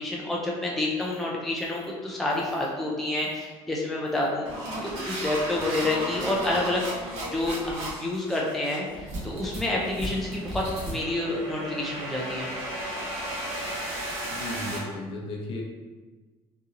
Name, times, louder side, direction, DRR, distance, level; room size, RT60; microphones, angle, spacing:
voice 1, 0.0-4.5 4.8-12.5, left 2 dB, ahead, -4 dB, 0.4 m, -29 dB
sound 1, 1.0-1.2 1.6-1.8 2.3-2.7 3.2-3.4 4.1-14.8, right 1 dB, 70° right, 1.2 m, -35 dB
voice 2, 14.3-15.6, left 1 dB, 50° left, -1 dB, 0.7 m, -35 dB
4.0 x 2.7 x 2.5 m, 1.4 s
cardioid pair, 130°, 12 cm